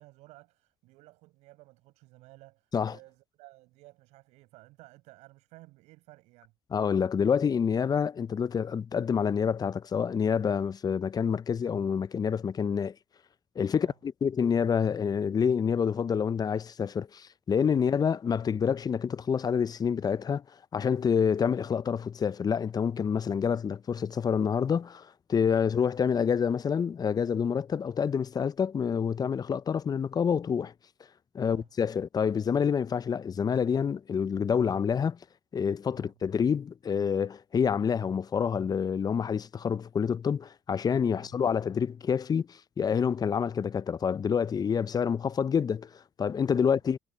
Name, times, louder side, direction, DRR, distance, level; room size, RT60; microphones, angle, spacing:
voice 1, 0.0-6.5 13.7-14.0 17.8-18.0 25.3-25.6 31.4-31.7 35.9-36.1 41.1-41.3 46.5-46.8, right 20 dB, 75° right, 6.8 m, -55 dB
voice 2, 6.7-12.9 13.6-20.4 20.7-30.7 31.3-35.2 35.5-45.9 46.2-47.0, left 7 dB, 35° left, 0.5 m, -27 dB
hypercardioid pair, 65°, 12 cm